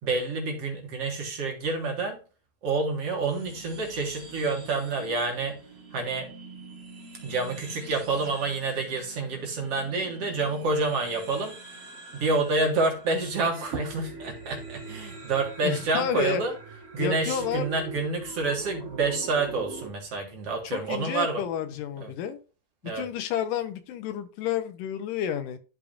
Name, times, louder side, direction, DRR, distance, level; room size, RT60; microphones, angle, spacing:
voice 1, 0.0-2.2 2.6-5.6 5.9-6.3 7.2-11.5 12.1-16.5 16.9-21.4 22.0-22.1 22.8-23.1, right 3 dB, 50° right, 1 dB, 2.5 m, -28 dB
sound 1, 3.3-19.9, right 3 dB, 35° right, 1.0 m, -44 dB
voice 2, 15.6-16.4 17.0-17.6 20.6-22.4 22.8-25.6, left 9 dB, 80° left, 10 dB, 2.4 m, -30 dB
12.0 x 5.0 x 2.6 m, 0.35 s
omnidirectional pair, 3.8 m